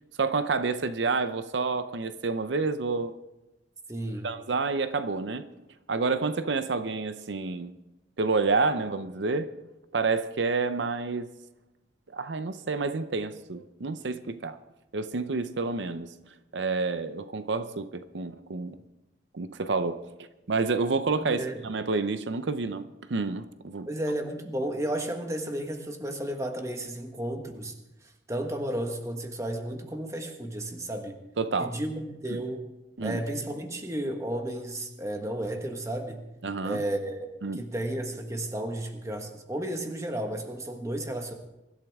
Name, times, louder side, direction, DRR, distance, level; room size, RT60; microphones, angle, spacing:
voice 1, 0.2-3.1 4.2-5.5 5.9-7.7 8.2-9.5 9.9-11.3 12.1-14.6 14.9-16.1 16.5-18.8 19.3-20.0 20.5-23.9 31.4-31.7 32.3-32.4 33.0-33.2 36.4-36.8 37.4-37.6, right 4 dB, 85° right, 0.7 m, -29 dB
voice 2, 3.9-4.3 21.2-21.6 23.9-27.7 28.3-31.2 31.6-32.6 33.0-36.2 36.6-37.3 37.6-41.3, right 1 dB, 15° right, 1.5 m, -33 dB
23.5 x 12.0 x 3.6 m
head